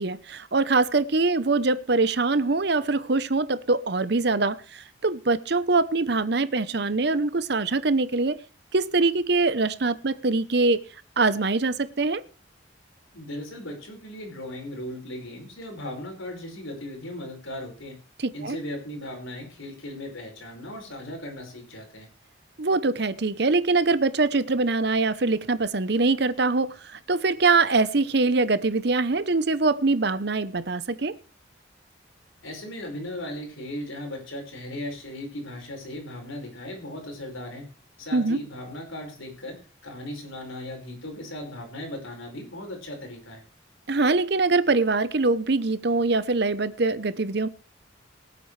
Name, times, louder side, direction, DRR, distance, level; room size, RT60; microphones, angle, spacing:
voice 1, 0.0-8.4 8.7-10.8 11.2-12.2 18.2-18.6 22.6-26.7 27.1-31.1 38.1-38.4 43.9-47.5, right 3 dB, 55° right, 0.8 m, -23 dB
voice 2, 13.1-18.0 18.3-22.1 32.4-37.7 38.0-43.4, left 1 dB, 90° left, 5.1 m, -37 dB
23.0 x 8.4 x 3.3 m
head